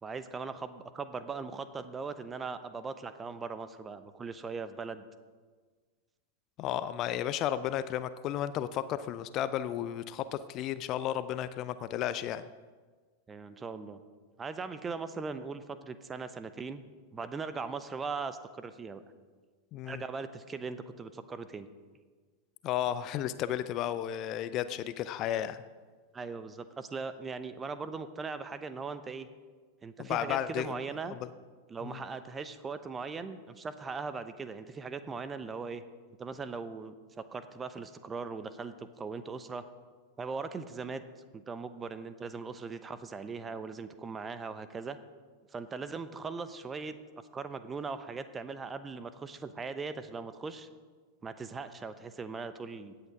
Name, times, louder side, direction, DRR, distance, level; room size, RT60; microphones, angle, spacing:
voice 1, 0.0-5.0 13.3-14.0 14.4-16.8 17.1-19.0 19.8-21.7 26.1-29.3 29.8-31.2 31.7-35.8 36.2-39.6 40.2-41.0 41.3-45.0 45.5-47.0 47.3-50.7 51.2-52.9, right 4 dB, 15° right, 12 dB, 0.8 m, -39 dB
voice 2, 6.6-12.5 19.7-20.0 22.6-25.6 30.0-30.8 31.1-31.2 31.8-32.0, left 11 dB, 35° left, 14 dB, 0.5 m, -33 dB
16.0 x 8.9 x 5.3 m, 1.5 s
figure-of-eight pair, 90°, 0 cm